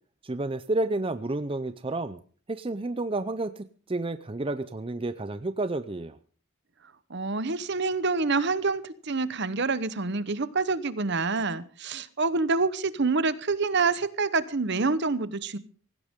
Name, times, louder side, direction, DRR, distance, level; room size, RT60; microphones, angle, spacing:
voice 1, 0.2-2.2 2.5-6.2, right 2 dB, 25° right, 12 dB, 0.6 m, -30 dB
voice 2, 7.1-15.6, right 4 dB, 55° right, 15 dB, 1.0 m, -27 dB
17.5 x 17.0 x 3.7 m, 0.43 s
head